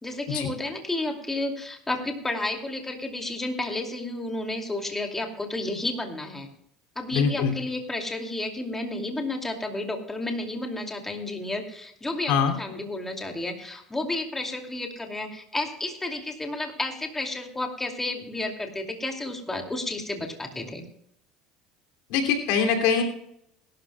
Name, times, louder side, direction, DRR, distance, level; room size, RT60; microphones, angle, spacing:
voice 1, 0.0-6.5 7.0-20.8, left 2 dB, 15° left, 3 dB, 2.5 m, -31 dB
voice 2, 7.1-7.5 12.3-12.5 22.1-23.0, left 6 dB, 75° left, 3 dB, 2.7 m, -23 dB
21.5 x 12.5 x 2.3 m, 0.74 s
supercardioid pair, 90°, 2 cm